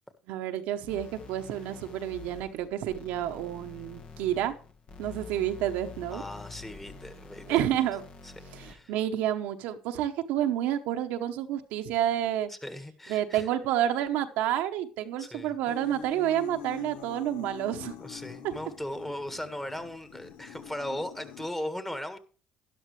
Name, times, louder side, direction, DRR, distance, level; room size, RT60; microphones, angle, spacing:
voice 1, 0.3-4.5 5.0-6.2 7.5-8.0 8.5-12.5 13.1-17.9 18.4-18.5, right 11 dB, 75° right, 1.0 m, -29 dB
sound 1, 0.9-8.9, left 5 dB, 50° left, 1.4 m, -47 dB
voice 2, 6.1-7.6 8.2-8.9 12.5-13.5 15.2-15.5 18.0-22.2, left 1 dB, 10° left, 1.7 m, -38 dB
sound 2, 15.7-21.5, left 9 dB, 75° left, 0.9 m, -45 dB
12.0 x 11.0 x 3.2 m
supercardioid pair, 65°, 3 cm